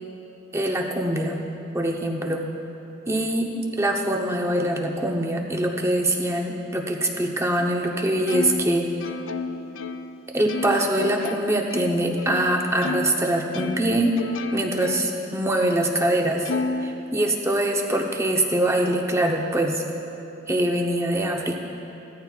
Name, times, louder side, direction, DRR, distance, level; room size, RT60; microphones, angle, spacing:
voice 1, 0.5-1.4 1.7-2.5 3.1-8.9 10.3-14.2 14.5-16.5 16.8-19.8 20.5-21.6, right 1 dB, 15° right, 1 dB, 0.8 m, -23 dB
Plucked string instrument, 8.3-13.2 13.5-15.3 15.7-15.8 16.5-17.6, left 3 dB, 70° left, 0.4 m, -32 dB
16.5 x 13.5 x 2.4 m, 3.0 s
head